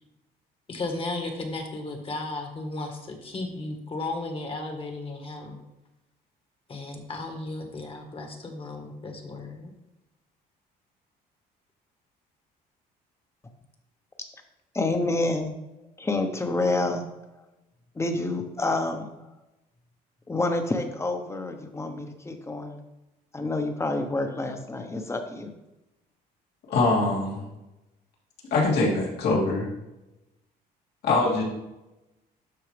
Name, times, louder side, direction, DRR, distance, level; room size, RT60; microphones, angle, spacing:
voice 1, 0.7-5.6 6.7-9.7, left 2 dB, 30° left, 4 dB, 1.6 m, -34 dB
voice 2, 14.7-15.5 16.0-17.0 17.9-19.1 20.3-22.8 23.3-25.5, left 2 dB, 15° left, 6 dB, 1.1 m, -28 dB
voice 3, 26.7-27.4 28.5-29.7 31.0-31.4, left 3 dB, 70° left, -3 dB, 2.9 m, -23 dB
12.5 x 4.5 x 3.4 m, 0.97 s
cardioid pair, 110°, 17 cm